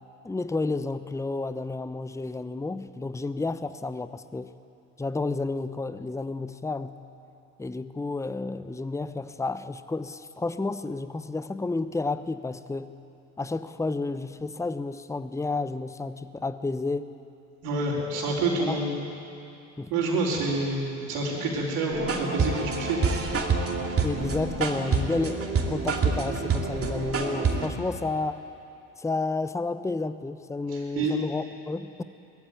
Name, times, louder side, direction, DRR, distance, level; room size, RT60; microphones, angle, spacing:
voice 1, 0.2-4.5 5.0-7.0 7.6-13.0 13.4-17.1 18.1-18.2 18.7-18.8 19.8-19.9 24.0-28.4 29.0-32.0, left 3 dB, 10° left, 13 dB, 0.8 m, -31 dB
voice 2, 17.6-18.9 19.9-23.0 30.7-31.1, right 2 dB, 70° right, -7 dB, 4.1 m, -28 dB
sound 1, 21.9-27.7, right 4 dB, 35° right, 2.9 m, -27 dB
20.5 x 14.5 x 9.3 m, 2.7 s
hypercardioid pair, 60°, 38 cm